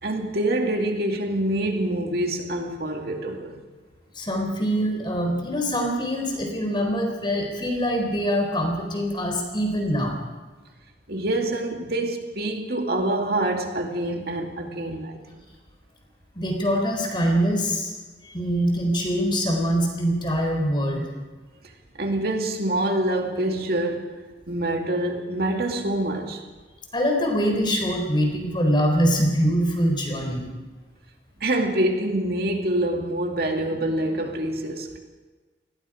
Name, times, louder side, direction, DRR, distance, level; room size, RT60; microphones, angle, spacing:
voice 1, 0.0-3.6 11.1-15.4 21.9-24.2 24.5-26.4 31.4-35.0, right 1 dB, 55° right, 2.4 m, -26 dB
voice 2, 4.1-10.2 16.3-17.9 18.2-21.1 26.9-30.5, equal, 25° left, 4.1 m, -24 dB
30.0 x 20.5 x 5.1 m
head